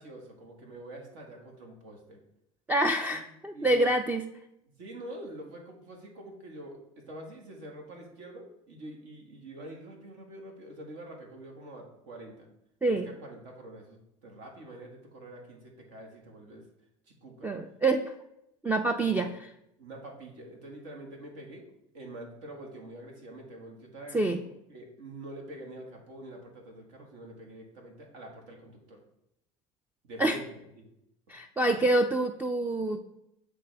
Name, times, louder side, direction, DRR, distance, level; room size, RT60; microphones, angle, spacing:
voice 1, 0.0-2.2 3.5-3.9 4.8-12.5 12.8-16.7 17.1-17.5 19.0-19.3 19.8-21.7 21.9-29.0 30.0-30.4 30.8-30.9 31.6-31.8, right 1 dB, 70° right, 1 dB, 1.6 m, -46 dB
voice 2, 2.7-4.2 12.8-13.1 17.4-18.1 18.6-19.3 24.1-24.4 30.2-30.4 31.3-33.0, right 2 dB, 10° right, 6 dB, 0.4 m, -26 dB
8.4 x 3.4 x 3.4 m, 0.81 s
supercardioid pair, 90°, 17 cm